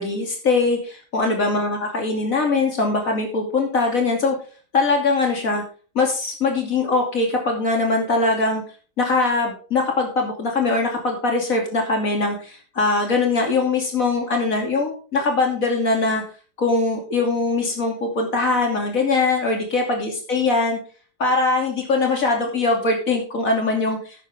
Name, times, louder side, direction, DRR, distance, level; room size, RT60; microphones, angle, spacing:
voice 1, 0.0-4.4 4.7-5.6 5.9-8.6 9.0-16.2 16.6-20.8 21.2-24.0, left 3 dB, 50° left, 2 dB, 3.2 m, -21 dB
12.0 x 9.4 x 3.6 m, 0.39 s
omnidirectional pair, 1.8 m